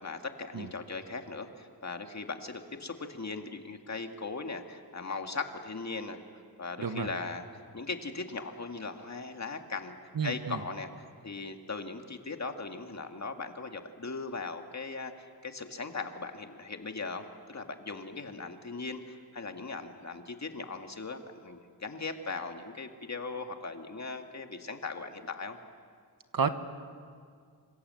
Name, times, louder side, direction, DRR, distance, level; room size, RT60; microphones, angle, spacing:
voice 1, 0.0-6.2 6.6-7.5 7.7-10.0 10.2-25.6, left 3 dB, 45° left, 5 dB, 2.0 m, -39 dB
voice 2, 6.8-7.1 10.1-10.6 26.3-26.5, right 6 dB, 60° right, 9 dB, 1.4 m, -30 dB
26.5 x 26.0 x 7.8 m, 2.1 s
wide cardioid pair, 100°, 38 cm